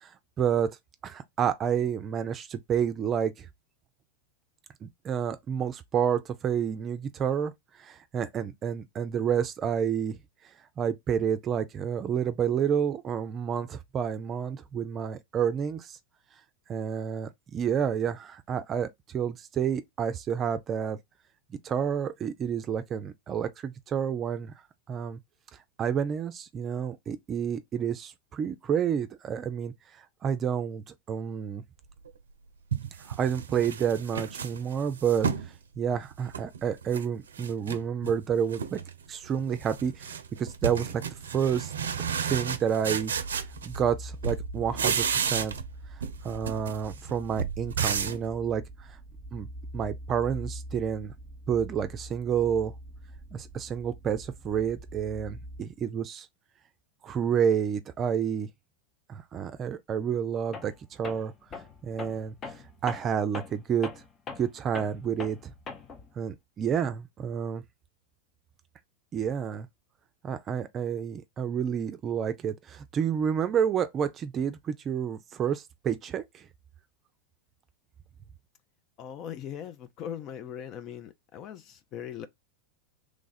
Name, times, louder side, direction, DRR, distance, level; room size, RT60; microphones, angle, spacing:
voice 1, 0.4-0.7 1.0-3.5 4.8-7.5 7.8-10.2 10.8-16.0 16.7-21.0 21.6-24.5 24.9-25.2 25.8-29.7 30.2-31.6 33.1-35.3 35.8-38.8 39.1-41.0 41.3-41.7 42.0-43.1 43.6-45.5 46.2-48.6 48.9-49.0 49.3-49.5 49.7-51.1 51.5-52.7 53.3-56.3 57.0-58.5 59.1-61.3 61.8-62.3 62.8-63.9 64.4-65.5 66.2-67.6 69.1-69.7 70.2-76.5, right 8 dB, 35° right, 0.5 m, -29 dB
sound 1, 32.1-32.2 32.7-35.5 35.9-37.1 37.3-38.2 38.5-38.9 39.2-44.0 44.2-45.7 46.0-48.3, right 7 dB, 85° right, 0.5 m, -32 dB
sound 2, 43.2-55.6, right 1 dB, 20° right, 0.9 m, -44 dB
Tools, 60.5-60.8 61.0-66.1, left 4 dB, 30° left, 0.9 m, -41 dB
voice 2, 79.0-82.3, left 9 dB, 45° left, 0.5 m, -40 dB
3.1 x 2.4 x 4.0 m
hypercardioid pair, 100°, 0 cm